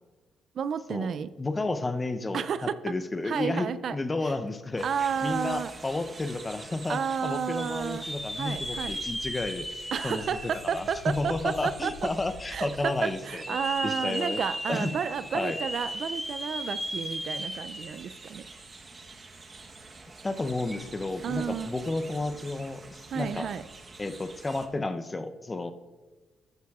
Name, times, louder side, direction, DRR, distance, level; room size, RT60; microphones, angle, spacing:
voice 1, 0.6-1.3 2.3-2.8 3.3-4.0 4.8-5.7 6.9-8.0 8.4-8.9 9.9-11.9 12.5-18.4 21.2-21.9 23.1-23.6, right 7 dB, 60° right, 14 dB, 0.3 m, -31 dB
voice 2, 1.4-13.6 13.8-14.4 14.7-14.9 15.3-15.6 20.2-23.5 24.0-25.7, left 2 dB, 20° left, 10 dB, 0.6 m, -32 dB
sound 1, 4.8-24.7, right 3 dB, 30° right, 1.0 m, -48 dB
sound 2, 7.6-11.5 12.1-12.2 13.2-18.2 18.5-18.6 20.6-20.8, equal, 5° left, 1.0 m, -36 dB
sound 3, 7.8-12.8, left 3 dB, 85° left, 2.0 m, -48 dB
13.0 x 9.3 x 2.4 m, 1.3 s
cardioid pair, 90°, 0 cm